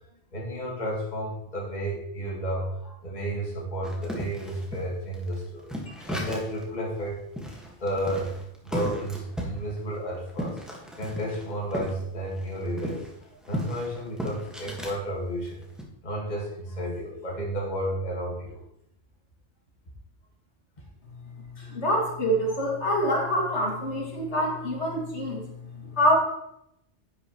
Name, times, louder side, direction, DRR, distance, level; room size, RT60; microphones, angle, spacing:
voice 1, 0.3-7.2 7.5-8.3 8.6-10.6 11.0-15.6 16.0-18.6 21.5-21.8 25.8-26.0, right 1 dB, 35° left, -3 dB, 1.9 m, -32 dB
sound 1, 3.8-6.6 7.0-7.1 7.4-11.9 12.2-15.0 15.4-15.8, equal, ahead, 1.4 m, -35 dB
voice 2, 21.7-25.4 25.7-26.2, equal, 70° left, -2 dB, 2.5 m, -25 dB
10.5 x 8.8 x 3.0 m, 0.79 s
omnidirectional pair, 1.2 m